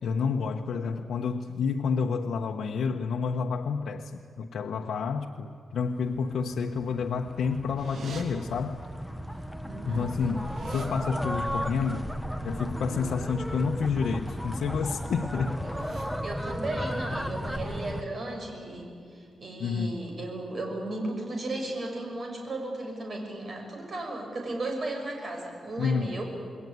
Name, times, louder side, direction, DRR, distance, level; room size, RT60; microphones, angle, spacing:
voice 1, 0.0-8.9 9.9-12.1 12.4-15.7 19.6-19.9 25.8-26.2, left 5 dB, 80° left, 1 dB, 1.1 m, -29 dB
sound 1, 6.0-18.0, equal, ahead, 1.0 m, -35 dB
sound 2, 7.8-8.2 9.4-9.5 9.8-10.9 14.0-14.4 14.8-15.1 15.5-16.0, right 5 dB, 75° right, 3.5 m, -45 dB
voice 2, 9.6-10.1 15.6-26.2, right 2 dB, 40° right, 2 dB, 6.5 m, -35 dB
28.0 x 21.0 x 9.6 m, 2.4 s
wide cardioid pair, 140°, 0 cm